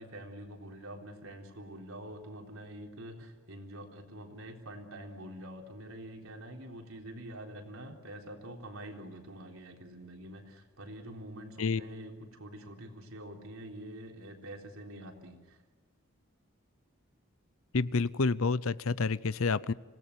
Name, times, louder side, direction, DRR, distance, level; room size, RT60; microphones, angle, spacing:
voice 1, 0.0-15.6, right 1 dB, 75° right, 2 dB, 3.8 m, -46 dB
voice 2, 17.7-19.7, left 4 dB, 75° left, 18 dB, 0.7 m, -29 dB
26.5 x 18.5 x 9.5 m, 1.4 s
head